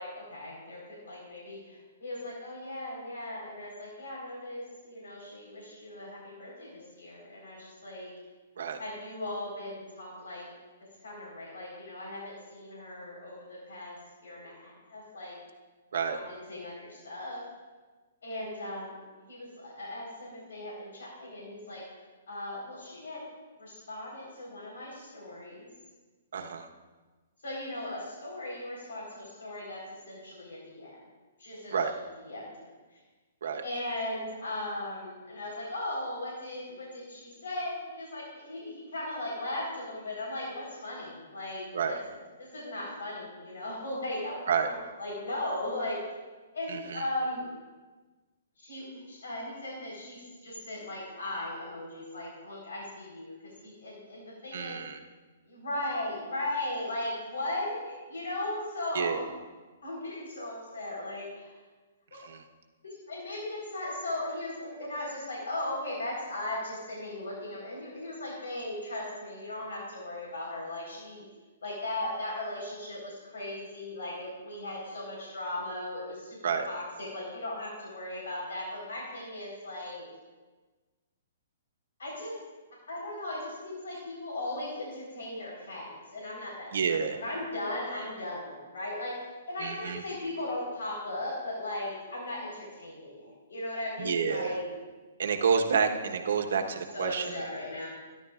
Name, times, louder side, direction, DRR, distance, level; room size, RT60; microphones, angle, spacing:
voice 1, 0.0-8.1 8.8-10.5 11.0-15.4 16.1-17.4 18.2-19.0 19.3-21.9 22.3-23.2 23.6-25.7 27.4-31.0 31.4-31.8 32.2-32.5 32.9-33.0 33.6-42.0 42.4-46.1 46.5-47.5 48.6-54.8 55.4-59.3 59.8-61.5 62.8-71.3 71.6-80.1 82.0-82.4 82.9-86.7 87.1-89.2 89.5-94.7 96.9-97.9, left 1 dB, 85° left, -4 dB, 4.5 m, -37 dB
voice 2, 26.3-26.7 31.7-31.9 33.4-33.6 41.7-42.0 44.5-44.7 46.7-47.1 54.5-55.0 58.9-59.2 62.2-62.4 76.4-76.7 86.7-87.2 89.6-90.0 94.0-94.5 95.2-97.4, right 6 dB, 75° right, 4 dB, 1.2 m, -29 dB
23.0 x 11.0 x 2.5 m, 1.3 s
hypercardioid pair, 150°, 0 cm